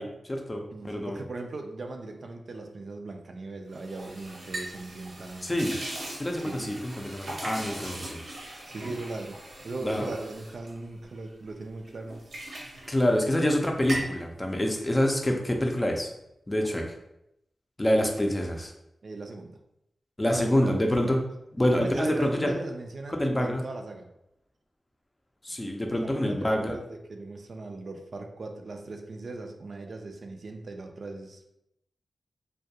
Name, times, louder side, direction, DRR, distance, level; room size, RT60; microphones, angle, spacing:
voice 1, 0.0-1.2 5.4-5.7 6.2-8.2 9.8-10.1 12.9-16.1 16.5-17.0 17.8-18.7 20.2-21.2 21.5-22.5 23.2-23.6 25.4-26.7, left 1 dB, 25° left, 2 dB, 0.4 m, -26 dB
voice 2, 0.7-5.5 6.4-6.7 8.7-9.4 9.6-12.2 16.7-16.8 19.0-19.6 20.2-21.1 21.8-24.1 26.0-31.5, right 2 dB, 65° right, 4 dB, 0.3 m, -39 dB
sound 1, 3.7-11.5 11.9-13.5 13.8-14.2, right 1 dB, 85° right, 0.7 m, -39 dB
2.2 x 2.2 x 2.7 m, 0.82 s
cardioid pair, 60°, 0 cm